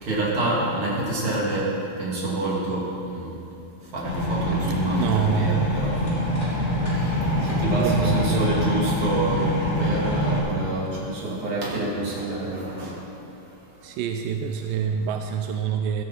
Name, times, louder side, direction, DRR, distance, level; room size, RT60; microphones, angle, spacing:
voice 1, 0.0-1.7 2.0-3.4 3.9-5.9 7.0-7.1 7.6-12.9, right 2 dB, 35° right, -6 dB, 3.5 m, -27 dB
sound 1, 4.0-10.4, equal, 25° left, 3.5 m, -25 dB
voice 2, 5.0-5.7 7.3-8.5 13.8-16.0, right 8 dB, 85° right, 5 dB, 2.0 m, -26 dB
16.0 x 14.0 x 4.4 m, 2.9 s
omnidirectional pair, 4.4 m